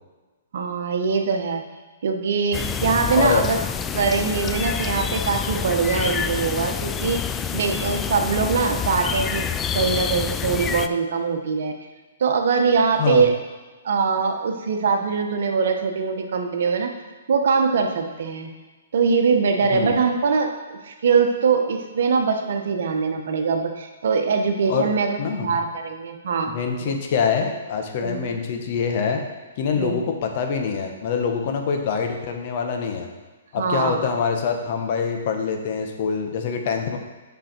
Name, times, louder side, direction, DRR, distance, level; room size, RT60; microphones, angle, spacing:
voice 1, 0.5-1.6 2.0-3.6 3.9-7.2 7.5-9.5 9.7-11.7 12.2-13.3 13.8-16.9 17.3-18.5 18.9-26.9 28.0-28.3 29.7-30.0 33.6-34.1, right 5 dB, 65° right, 4 dB, 1.0 m, -22 dB
sound 1, 2.5-10.9, left 7 dB, 15° left, 0.3 m, -27 dB
voice 2, 13.0-13.3 19.7-20.0 24.7-24.9 25.2-25.6 26.5-29.2 29.6-33.1 33.5-37.0, left 6 dB, 50° left, 4 dB, 1.1 m, -25 dB
7.7 x 5.6 x 4.4 m, 1.3 s
hypercardioid pair, 130°, 0 cm